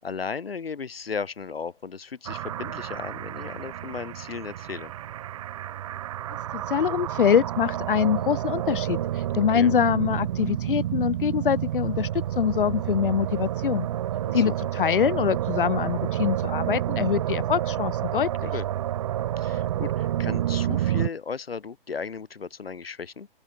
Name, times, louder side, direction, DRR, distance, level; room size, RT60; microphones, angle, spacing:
voice 1, 0.0-4.9 9.5-9.7 14.2-14.6 18.5-18.6 19.4-23.3, left 5 dB, 90° left, 1.8 m, -35 dB
sound 1, 2.2-21.1, right 12 dB, 35° right, 0.8 m, -29 dB
voice 2, 6.5-13.9 14.3-18.5, left 8 dB, 65° left, 1.7 m, -24 dB
open air
hypercardioid pair, 150°, 29 cm